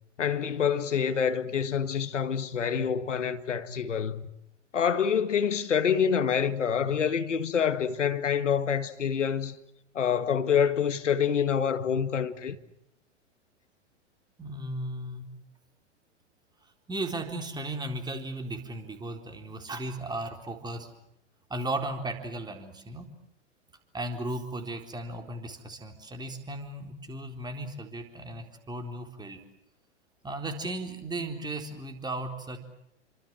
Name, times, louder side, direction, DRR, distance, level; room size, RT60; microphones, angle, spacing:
voice 1, 0.2-4.2 4.7-9.6 9.9-12.6, left 7 dB, 75° left, 2.0 m, -26 dB
voice 2, 14.4-15.3 16.9-20.9 21.5-23.1 23.9-29.4 30.2-32.6, right 2 dB, 10° right, 4.1 m, -36 dB
28.5 x 25.5 x 7.6 m
figure-of-eight pair, 105°, 37 cm